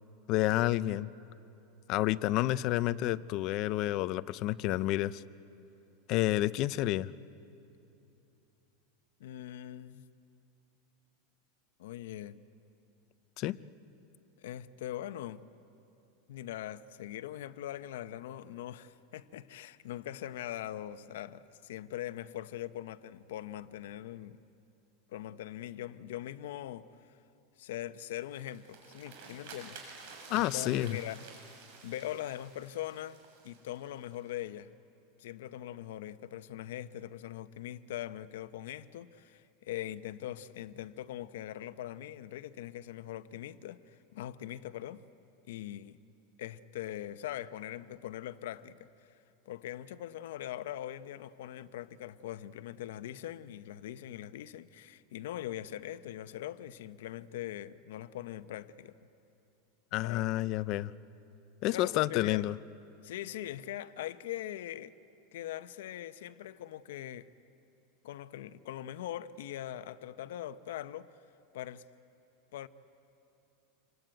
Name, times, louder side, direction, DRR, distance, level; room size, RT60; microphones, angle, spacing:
voice 1, 0.3-1.1 1.9-5.2 6.1-7.1 13.4-13.6 30.3-31.0 59.9-60.9 61.6-62.6, left 15 dB, 40° left, 0.6 m, -29 dB
voice 2, 9.2-10.0 11.8-12.4 14.4-15.5 16.3-24.4 25.1-26.9 27.6-29.8 30.3-31.5 31.8-33.2 33.4-34.7 35.2-45.0 45.5-46.0 46.4-48.8 49.5-58.9 60.0-60.3 61.7-62.4 63.0-64.9 65.3-67.3 68.0-71.1 71.5-71.8 72.5-72.7, left 12 dB, 80° left, 0.9 m, -41 dB
sound 1, 28.2-34.3, right 4 dB, 60° right, 7.6 m, -51 dB
27.5 x 23.5 x 9.1 m
supercardioid pair, 160°, 0 cm